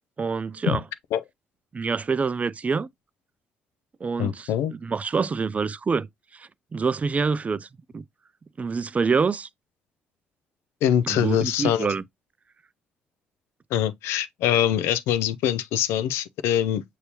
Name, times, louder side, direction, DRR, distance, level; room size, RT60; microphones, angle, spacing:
voice 1, 0.2-0.8 1.7-2.9 4.0-6.1 6.3-7.7 7.9-8.0 8.6-9.5 11.1-12.0, right 5 dB, 35° right, 0.4 m, -26 dB
voice 2, 4.2-4.7 10.8-11.9 13.7-16.8, left 10 dB, 75° left, 0.4 m, -23 dB
6.6 x 2.8 x 2.8 m
hypercardioid pair, 50°, 4 cm